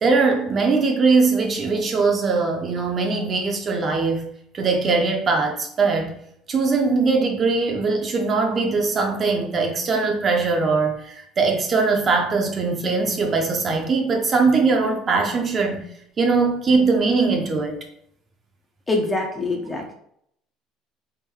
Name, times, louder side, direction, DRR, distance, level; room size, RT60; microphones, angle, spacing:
voice 1, 0.0-4.3 4.5-6.1 6.5-15.8 16.2-17.8, right 4 dB, 25° right, 2 dB, 0.6 m, -21 dB
voice 2, 18.9-19.9, left 2 dB, 10° left, 1 dB, 0.6 m, -24 dB
3.6 x 2.5 x 4.5 m, 0.69 s
cardioid pair, 160°, 0 cm